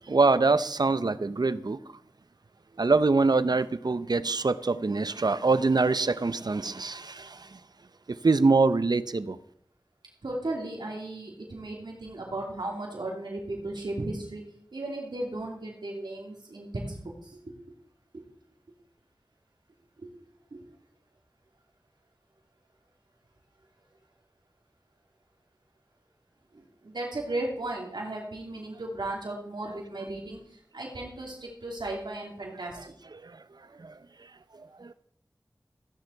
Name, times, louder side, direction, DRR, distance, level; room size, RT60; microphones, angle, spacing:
voice 1, 0.1-1.8 2.8-7.6 8.1-9.4 33.2-33.4 33.8-34.0 34.6-34.9, right 3 dB, 65° right, 14 dB, 0.7 m, -24 dB
voice 2, 10.2-14.4 14.7-17.6 18.1-18.2 20.0-20.1 20.5-20.6 26.5-30.4 30.7-32.9, right 2 dB, 90° right, -1 dB, 2.8 m, -35 dB
15.5 x 9.7 x 4.6 m, 0.64 s
wide cardioid pair, 60°, 8 cm